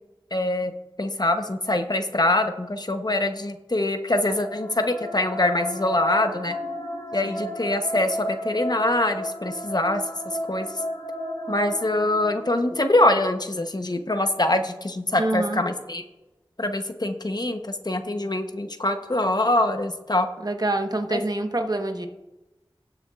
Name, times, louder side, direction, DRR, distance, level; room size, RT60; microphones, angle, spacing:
voice 1, 0.3-0.7 1.0-6.5 7.1-10.0 10.5-10.7 11.5-16.0 16.6-20.3 21.1-21.2, left 1 dB, 45° left, 7 dB, 0.8 m, -24 dB
sound 1, 4.1-13.3, equal, 80° left, 1.5 m, -33 dB
voice 2, 15.2-15.6 20.4-22.1, right 2 dB, 45° right, 5 dB, 1.1 m, -26 dB
19.0 x 6.9 x 2.4 m, 1.0 s
wide cardioid pair, 45°, 10 cm